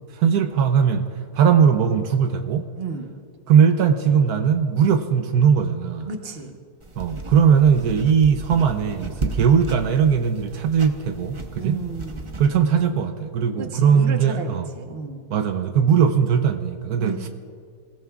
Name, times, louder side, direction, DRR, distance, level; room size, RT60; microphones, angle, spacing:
voice 1, 0.1-1.0 1.3-2.6 3.5-6.1 7.0-11.7 12.4-14.7 15.3-17.3, right 7 dB, 80° right, 7 dB, 1.2 m, -19 dB
voice 2, 2.8-3.1 6.1-6.6 11.6-12.3 13.6-15.3 17.0-17.2, right 5 dB, 40° right, 4 dB, 1.2 m, -32 dB
sound 1, 6.8-12.5, right 2 dB, 25° right, 0.7 m, -35 dB
27.0 x 16.5 x 2.4 m, 2.1 s
omnidirectional pair, 1.7 m